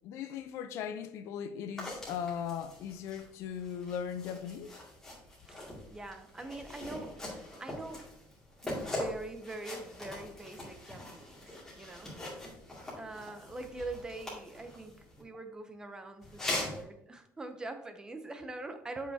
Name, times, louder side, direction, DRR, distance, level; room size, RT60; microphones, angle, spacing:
voice 1, 0.0-4.7, left 8 dB, 65° left, 0.6 m, -38 dB
sound 1, 1.8-15.2 16.2-16.8, left 1 dB, 10° left, 2.3 m, -42 dB
voice 2, 5.5-8.1 8.6-12.2 13.0-19.1, right 2 dB, 15° right, 0.6 m, -43 dB
7.7 x 5.6 x 2.8 m
cardioid pair, 145°, 5 cm